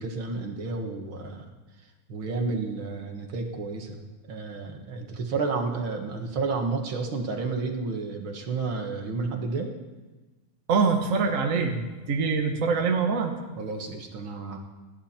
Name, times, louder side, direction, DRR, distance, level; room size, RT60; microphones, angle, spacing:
voice 1, 0.0-1.5 2.1-4.0 4.3-9.7 13.6-14.6, right 4 dB, 75° right, 3 dB, 2.4 m, -31 dB
voice 2, 10.7-11.8 12.1-13.3, right 5 dB, 45° right, 3 dB, 1.6 m, -24 dB
29.5 x 10.5 x 4.4 m, 1.2 s
omnidirectional pair, 2.3 m